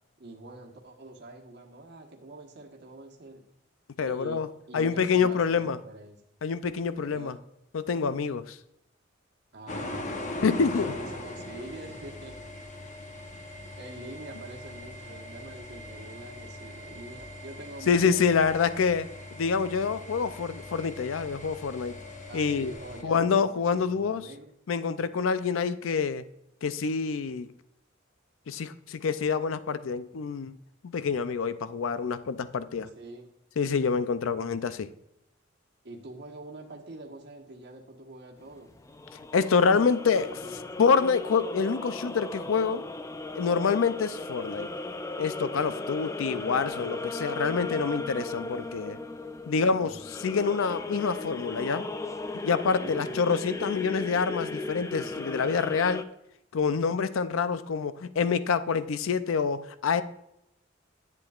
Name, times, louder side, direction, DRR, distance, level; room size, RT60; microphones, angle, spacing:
voice 1, 0.2-3.4 4.0-6.2 7.0-7.4 9.5-12.4 13.3-18.5 22.3-24.5 32.9-33.3 35.8-38.7 40.3-40.8 49.5-50.0 52.8-53.2, right 2 dB, 55° right, 0 dB, 1.3 m, -45 dB
voice 2, 4.0-4.5 4.7-5.8 6.4-7.4 7.7-8.6 10.4-10.9 17.9-21.9 22.3-22.7 23.0-24.3 24.7-26.2 26.6-27.5 28.5-30.5 30.8-32.9 33.6-34.9 39.3-40.4 40.8-42.8 43.3-44.7 45.2-49.0 49.5-51.9 52.4-56.1 56.5-60.0, left 5 dB, 85° left, 13 dB, 0.5 m, -27 dB
sound 1, 9.7-23.0, left 1 dB, 40° left, 0.9 m, -41 dB
sound 2, 38.4-56.0, left 2 dB, 15° left, 0.4 m, -37 dB
10.5 x 8.5 x 2.4 m, 0.83 s
head